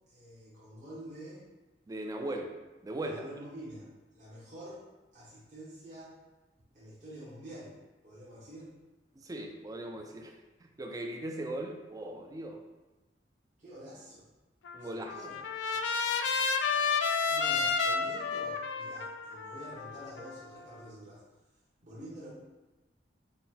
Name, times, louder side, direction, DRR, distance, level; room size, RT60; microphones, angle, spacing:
voice 1, 0.1-1.5 3.0-3.9 4.1-4.8 5.1-6.1 6.7-7.7 8.0-8.7 13.6-14.3 14.8-15.4 17.2-21.2 21.8-22.3, equal, 45° right, -8 dB, 0.9 m, -47 dB
voice 2, 1.9-2.5 2.8-3.2 9.2-12.6 14.7-15.1, right 1 dB, 20° right, 3 dB, 0.3 m, -39 dB
Trumpet, 14.6-20.8, left 5 dB, 85° left, 0.3 m, -31 dB
3.7 x 2.2 x 4.1 m, 1.1 s
head